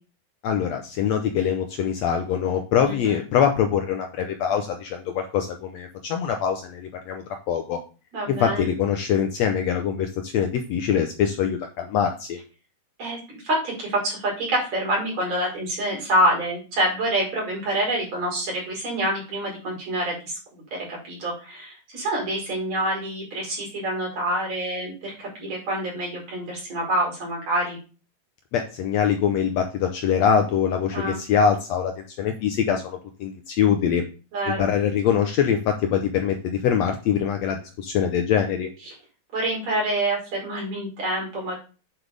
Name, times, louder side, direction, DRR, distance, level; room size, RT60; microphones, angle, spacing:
voice 1, 0.4-7.8 8.3-12.4 28.5-34.0 34.5-38.7, left 8 dB, 70° left, 4 dB, 1.7 m, -23 dB
voice 2, 2.8-3.2 8.1-8.7 13.0-13.2 13.4-27.8 30.9-31.2 34.3-34.7 38.9-39.0 39.3-41.6, right 1 dB, 55° right, -3 dB, 5.6 m, -27 dB
9.1 x 7.8 x 3.4 m, 0.35 s
omnidirectional pair, 3.7 m